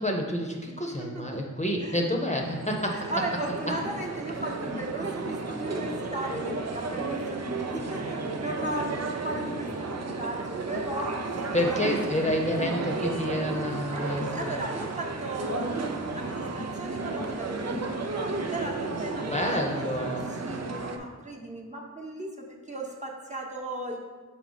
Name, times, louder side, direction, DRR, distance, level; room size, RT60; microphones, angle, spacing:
voice 1, 0.0-3.1 11.5-14.6 19.2-20.3, left 1 dB, 25° left, 0 dB, 0.8 m, -29 dB
voice 2, 1.0-1.4 1.8-2.0 2.9-12.0 13.9-20.1 20.4-24.0, right 1 dB, 25° right, -2 dB, 1.0 m, -36 dB
sound 1, 2.1-21.0, right 3 dB, 60° right, 0.6 m, -33 dB
Tap, 3.0-3.2 3.8-4.0 4.7-5.0 5.3-5.5 5.9-6.1 6.5-6.7 7.3-7.5 7.9-8.2 8.6-8.9 9.4-9.7 10.1-10.3 10.7-11.0 11.4-11.6 12.3-12.5 13.0-13.2 14.2-14.5 15.6-15.8 16.6-16.8 17.2-17.4 17.7-18.0, left 6 dB, 50° left, 0.5 m, -44 dB
sound 2, 11.6-17.3, right 4 dB, 85° right, 1.4 m, -48 dB
6.0 x 4.4 x 4.0 m, 1.3 s
wide cardioid pair, 50°, 30 cm